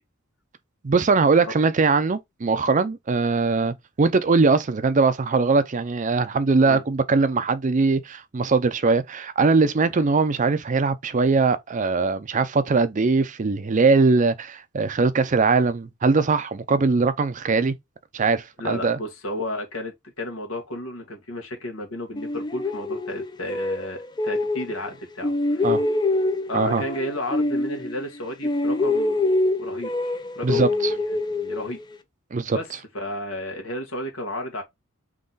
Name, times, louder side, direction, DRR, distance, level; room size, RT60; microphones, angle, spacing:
voice 1, 0.8-17.7 18.1-19.0 25.6-25.8 26.5-26.8 30.4-30.9 32.3-32.6, right 4 dB, 35° right, 0.5 m, -21 dB
voice 2, 18.6-25.7 26.5-29.2 29.6-29.9 30.4-31.8 32.5-32.7 32.9-34.6, left 1 dB, 90° left, 1.7 m, -33 dB
sound 1, 22.2-24.9 25.2-28.2 28.4-32.0, left 2 dB, 20° left, 0.4 m, -25 dB
3.7 x 3.0 x 3.9 m
head